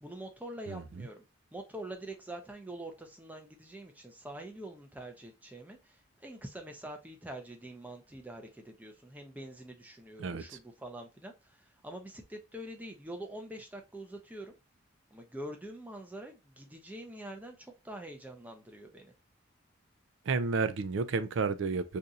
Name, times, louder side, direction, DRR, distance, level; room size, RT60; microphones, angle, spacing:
voice 1, 0.0-1.2 1.5-14.5 15.1-19.1, right 1 dB, 10° right, 0.5 m, -45 dB
voice 2, 0.7-1.1 10.2-10.6 20.3-22.0, right 4 dB, 65° right, 0.4 m, -32 dB
2.6 x 2.4 x 3.9 m
head